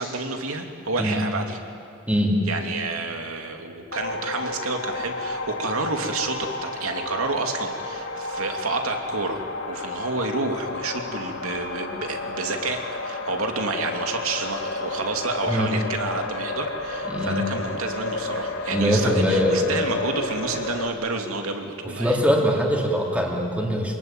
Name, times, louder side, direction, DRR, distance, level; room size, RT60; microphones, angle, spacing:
voice 1, 0.0-1.6 2.5-22.2, right 3 dB, 80° right, 4 dB, 2.7 m, -29 dB
sound 1, 3.9-20.9, left 3 dB, 65° left, 2.1 m, -31 dB
voice 2, 17.1-17.4 18.7-19.7 22.0-24.0, equal, 5° right, -1 dB, 3.3 m, -22 dB
25.0 x 21.0 x 9.0 m, 2.5 s
head